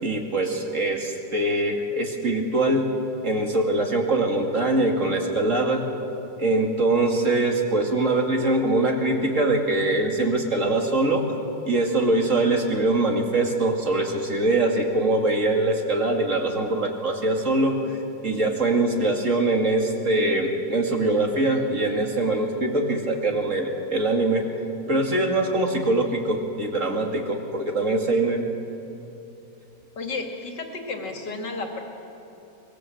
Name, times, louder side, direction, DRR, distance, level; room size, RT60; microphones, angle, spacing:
voice 1, 0.0-2.9 3.2-5.9 6.4-11.2 11.7-18.0 18.2-24.5 24.9-28.5, right 2 dB, 45° right, 2 dB, 2.7 m, -23 dB
voice 2, 30.0-31.8, left 3 dB, 70° left, 2 dB, 3.2 m, -32 dB
24.0 x 21.5 x 7.9 m, 2.8 s
omnidirectional pair, 1.9 m